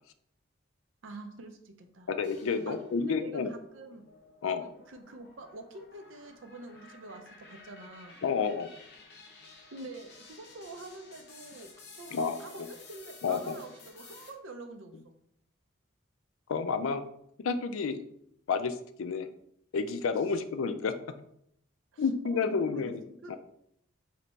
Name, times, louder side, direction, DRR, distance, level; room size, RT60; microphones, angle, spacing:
voice 1, 1.0-2.1 2.7-4.0 4.6-8.2 9.7-11.7 12.0-15.1 21.9-23.4, right 2 dB, 70° right, 6 dB, 0.5 m, -47 dB
voice 2, 2.1-3.5 4.4-4.7 8.2-8.7 12.1-12.4 13.2-13.6 16.5-17.0 17.4-18.0 18.5-19.3 19.7-20.9 22.0-23.0 23.3-23.4, left 5 dB, 75° left, 9 dB, 0.4 m, -30 dB
sound 1, 2.2-3.1 3.6-14.3, left 3 dB, 50° left, 0.8 m, -54 dB
3.3 x 3.2 x 4.0 m, 0.73 s
head